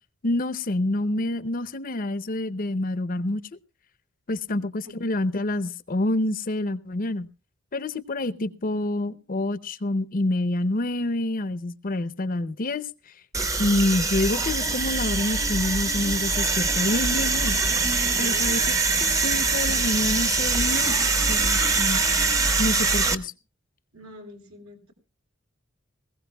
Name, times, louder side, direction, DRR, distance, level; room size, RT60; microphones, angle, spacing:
voice 1, 0.2-3.4 4.3-7.3 7.7-12.9 13.6-17.6 18.2-18.6 19.2-21.0 21.3-22.0 22.6-23.2, left 1 dB, 40° left, 0.7 m, -27 dB
sound 1, 13.3-23.2, right 3 dB, 15° right, 0.7 m, -23 dB
voice 2, 18.2-18.8 22.7-23.0 23.9-24.9, equal, 85° right, 3.6 m, -45 dB
20.0 x 15.5 x 2.3 m
head